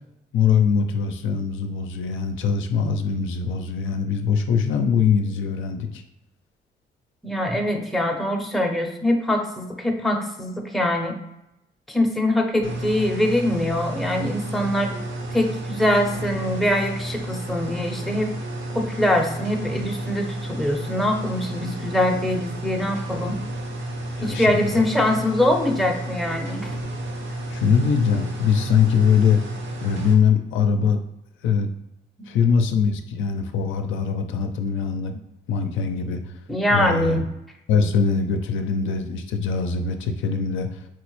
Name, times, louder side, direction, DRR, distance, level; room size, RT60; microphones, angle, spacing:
voice 1, 0.3-6.0 24.2-24.5 24.7-24.8 27.5-29.4 29.8-31.0 31.4-31.7 32.3-35.2 35.5-36.2 36.7-37.2 37.7-40.8, left 6 dB, 80° left, 6 dB, 0.4 m, -22 dB
voice 2, 7.2-11.2 11.9-14.9 15.3-18.3 18.7-23.4 24.2-26.7 36.5-37.2, left 1 dB, ahead, 1 dB, 0.5 m, -23 dB
sound 1, 12.6-30.1, right 1 dB, 65° right, 0.7 m, -32 dB
4.4 x 2.0 x 3.0 m, 0.89 s
cardioid pair, 90°, 20 cm